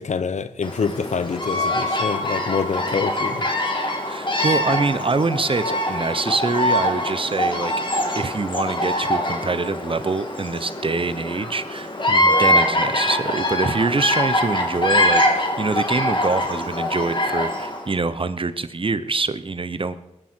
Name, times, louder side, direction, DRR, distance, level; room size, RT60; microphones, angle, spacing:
voice 1, 0.0-3.5 4.4-4.5 12.1-12.3, left 5 dB, 70° left, 0.9 m, -26 dB
Bird vocalization bird call bird song, 0.6-17.9, left 1 dB, 40° left, 2.6 m, -23 dB
voice 2, 4.1-7.7 8.1-11.9 12.2-20.0, right 3 dB, 45° right, 0.9 m, -25 dB
20.5 x 10.0 x 4.6 m
cardioid pair, 45°, 13 cm